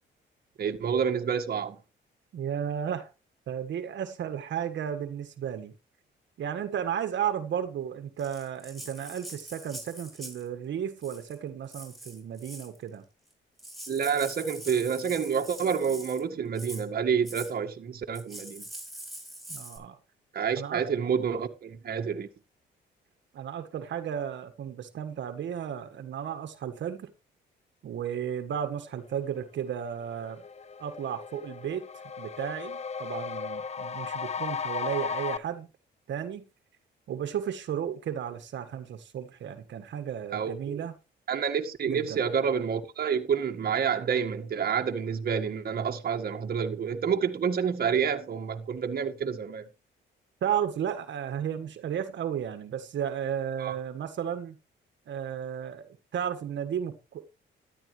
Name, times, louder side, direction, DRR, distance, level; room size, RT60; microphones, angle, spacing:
voice 1, 0.6-1.8 13.9-18.7 20.3-22.3 40.3-40.8 41.3-49.7 53.6-53.7, right 7 dB, 50° right, 1.7 m, -28 dB
voice 2, 2.3-3.1 3.5-5.7 6.4-13.0 19.5-20.0 20.6-20.8 23.3-27.1 27.8-30.4 30.8-31.9 32.2-35.7 36.1-36.4 37.1-40.9 41.9-42.2 50.4-54.5 55.1-57.2, right 9 dB, 65° right, 1.6 m, -34 dB
Rattle (instrument), 8.2-10.5 11.0-11.3 11.7-12.8 13.3-13.4 13.6-16.2 16.5-16.8 17.2-17.5 18.1-19.8, right 1 dB, ahead, 6.4 m, -44 dB
sound 1, 29.6-29.7 30.0-35.4, left 6 dB, 35° left, 0.7 m, -36 dB
13.5 x 11.5 x 3.2 m
cardioid pair, 90°, 20 cm